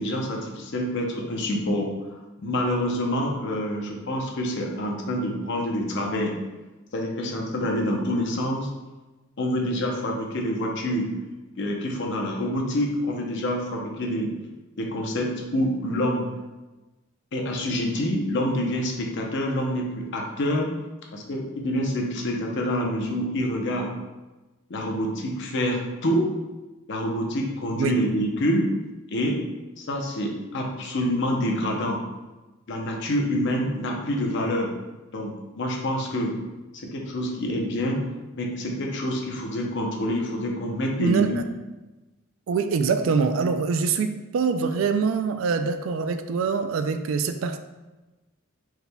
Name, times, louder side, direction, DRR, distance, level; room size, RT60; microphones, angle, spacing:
voice 1, 0.0-1.9 2.4-6.3 6.9-8.7 9.4-11.1 11.5-14.3 14.8-16.3 17.3-20.7 21.1-23.9 24.7-26.3 26.9-28.7 29.1-29.4 29.8-32.0 32.7-34.7 35.1-36.3 36.9-38.0 38.3-41.4, equal, 55° left, 0 dB, 0.6 m, -27 dB
voice 2, 41.0-41.4 42.5-47.6, right 5 dB, 65° right, 8 dB, 0.3 m, -24 dB
4.6 x 3.4 x 2.2 m, 1.1 s
head